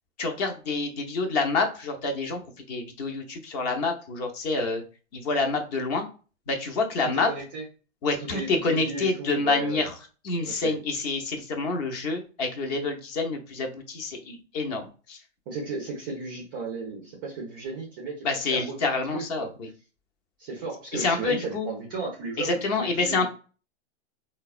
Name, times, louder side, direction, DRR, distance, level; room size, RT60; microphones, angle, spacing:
voice 1, 0.2-4.8 5.1-6.1 6.5-7.3 8.0-9.9 10.2-15.2 18.2-19.7 20.9-21.7 22.4-23.3, left 3 dB, 35° left, 4 dB, 0.6 m, -27 dB
voice 2, 7.1-7.6 8.2-9.8 10.4-10.8 15.5-19.5 20.4-23.3, right 4 dB, 20° right, 0 dB, 0.3 m, -35 dB
3.4 x 2.1 x 2.3 m, 0.36 s
hypercardioid pair, 130°, 36 cm